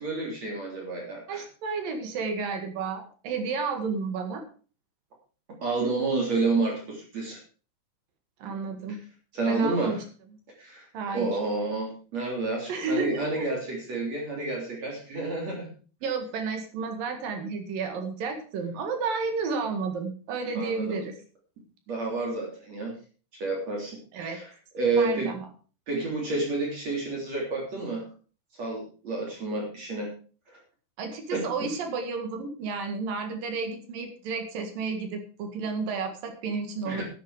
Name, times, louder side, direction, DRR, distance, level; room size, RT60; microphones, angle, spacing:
voice 1, 0.0-1.4 5.6-7.4 9.3-10.0 10.6-10.9 11.1-15.7 20.6-21.0 21.9-22.9 23.3-25.3 25.9-28.1 28.6-30.1 31.3-31.5 36.8-37.0, right 3 dB, 40° right, -2 dB, 4.0 m, -29 dB
voice 2, 1.3-4.4 8.4-9.0 9.5-10.0 10.9-11.4 12.7-13.5 16.0-21.1 24.1-24.4 24.9-25.4 31.0-37.0, right 4 dB, 55° right, 5 dB, 3.0 m, -32 dB
11.5 x 10.5 x 4.9 m, 0.39 s
omnidirectional pair, 5.4 m